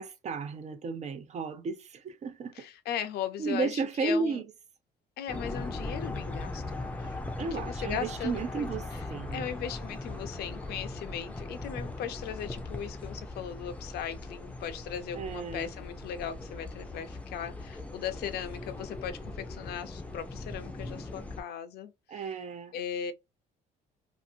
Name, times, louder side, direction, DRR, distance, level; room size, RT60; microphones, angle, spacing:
voice 1, 0.0-2.5 3.4-4.4 7.4-9.5 15.1-15.7 22.1-22.7, right 4 dB, 40° right, 0.6 m, -33 dB
voice 2, 2.5-4.4 5.2-7.2 7.6-9.0 9.3-22.3 22.7-23.1, left 9 dB, 70° left, 0.6 m, -38 dB
sound 1, 5.3-21.4, left 2 dB, 10° left, 0.6 m, -39 dB
2.6 x 2.5 x 2.6 m
cardioid pair, 110°, 17 cm